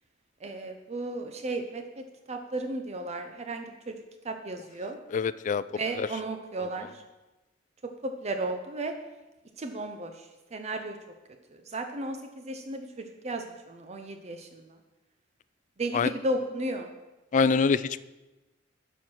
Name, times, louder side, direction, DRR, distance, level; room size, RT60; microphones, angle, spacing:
voice 1, 0.4-4.0 4.2-5.0 5.7-7.0 8.0-8.9 9.6-11.0 11.5-14.8 15.8-16.9, right 2 dB, 35° right, 6 dB, 0.6 m, -34 dB
voice 2, 5.1-5.6 6.0-6.1 15.9-16.1 17.3-18.0, left 5 dB, 40° left, 17 dB, 0.3 m, -24 dB
12.0 x 4.5 x 6.2 m, 1.1 s
head